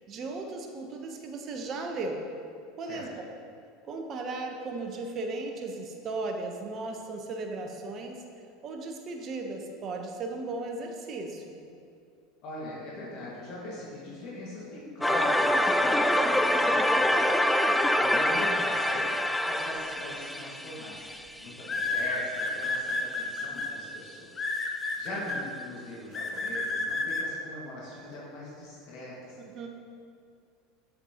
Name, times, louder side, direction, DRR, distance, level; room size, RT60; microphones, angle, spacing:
voice 1, 0.0-2.2 2.8-3.1 3.9-8.2 8.6-11.6 25.1-25.3 29.4-29.7, right 3 dB, 40° right, 3 dB, 0.9 m, -36 dB
voice 2, 12.4-17.3 17.7-19.1 19.5-21.0 21.4-24.4 24.6-29.7, left 1 dB, 60° left, -6 dB, 1.8 m, -41 dB
sound 1, 15.0-21.9, left 1 dB, 5° left, 0.3 m, -25 dB
sound 2, 20.2-20.5 21.7-23.7 24.4-25.4 26.1-27.2, left 3 dB, 30° left, 0.9 m, -30 dB
7.8 x 7.1 x 2.9 m, 2.4 s
hypercardioid pair, 85°, 0 cm